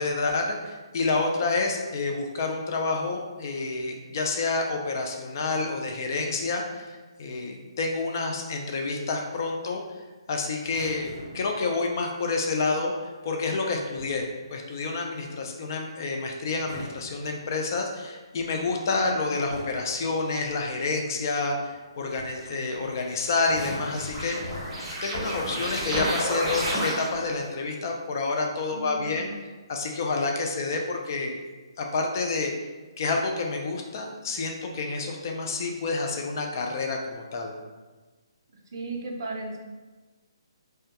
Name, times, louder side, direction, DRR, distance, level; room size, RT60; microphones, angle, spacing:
voice 1, 0.0-9.8 10.3-24.6 25.0-29.3 29.7-31.4 31.8-32.5 33.0-37.5, left 3 dB, 40° left, 2 dB, 0.3 m, -29 dB
sound 1, 10.6-11.6 13.7-14.3 16.5-17.8 18.9-19.1 19.5-20.0 21.7-21.8 22.1-22.5 23.4-25.1 26.0-26.3, equal, 75° left, 1.0 m, -42 dB
sound 2, 22.4-27.4, equal, 5° right, 0.8 m, -31 dB
voice 2, 28.7-29.3 38.7-39.6, right 2 dB, 55° right, 0 dB, 0.4 m, -35 dB
2.2 x 2.1 x 2.8 m, 1.3 s
hypercardioid pair, 160°, 3 cm